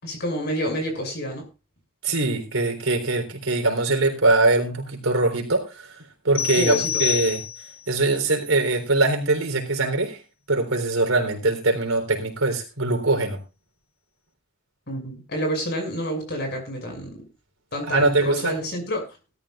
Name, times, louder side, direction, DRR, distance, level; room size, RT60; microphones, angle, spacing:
voice 1, 0.0-1.5 6.6-7.0 14.9-17.1 17.7-19.1, equal, 55° left, 3 dB, 6.2 m, -28 dB
voice 2, 2.0-6.0 6.2-7.4 7.9-10.2 10.5-13.4 17.9-18.6, right 2 dB, 85° right, 4 dB, 3.8 m, -22 dB
sound 1, 6.3-7.9, left 9 dB, 80° left, 3.1 m, -27 dB
18.0 x 13.5 x 2.5 m, 0.29 s
head